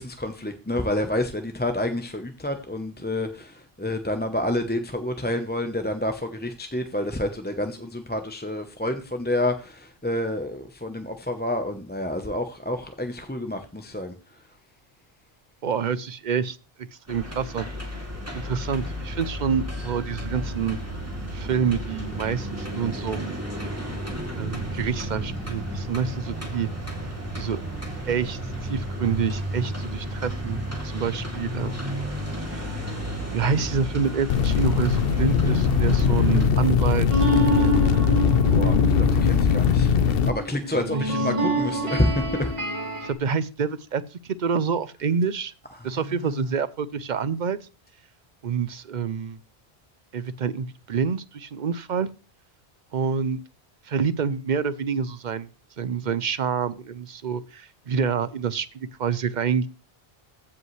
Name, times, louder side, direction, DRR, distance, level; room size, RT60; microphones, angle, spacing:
voice 1, 0.0-14.1 38.5-40.0 40.2-42.5 45.8-45.9, left 1 dB, 10° left, 6 dB, 0.8 m, -28 dB
voice 2, 15.6-16.6 17.1-17.7 17.9-18.0 18.3-20.8 21.3-23.4 24.4-26.7 27.4-27.6 28.1-32.0 32.5-32.9 33.3-37.3 39.0-39.2 40.9-41.1 43.0-45.5 45.8-47.6 48.4-49.4 50.1-52.1 52.9-53.4 53.9-55.5 55.8-59.7, right 6 dB, 55° right, 15 dB, 0.7 m, -27 dB
sound 1, 17.1-36.5, equal, 15° right, 2.5 m, -32 dB
sound 2, 34.3-40.3, left 6 dB, 70° left, 0.9 m, -20 dB
sound 3, 37.1-43.1, equal, 30° right, 2.7 m, -26 dB
15.0 x 5.4 x 3.2 m, 0.33 s
omnidirectional pair, 1.0 m